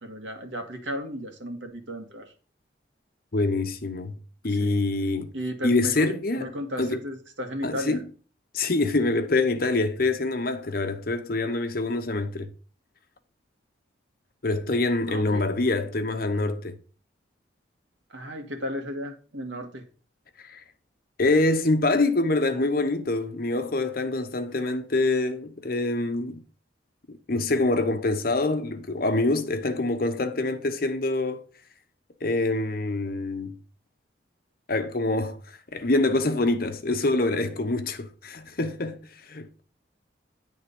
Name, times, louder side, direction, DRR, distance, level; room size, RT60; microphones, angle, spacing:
voice 1, 0.0-2.3 4.4-4.8 5.3-8.0 15.1-15.5 18.1-19.8, equal, 90° right, 1.6 m, -35 dB
voice 2, 3.3-4.2 4.4-5.3 5.6-6.5 6.8-7.0 7.6-8.0 8.5-12.5 14.4-16.8 20.4-20.6 21.2-26.4 27.3-31.4 32.2-33.5 34.7-35.4 35.7-39.6, left 2 dB, 50° left, 0.9 m, -25 dB
9.8 x 3.6 x 5.2 m
head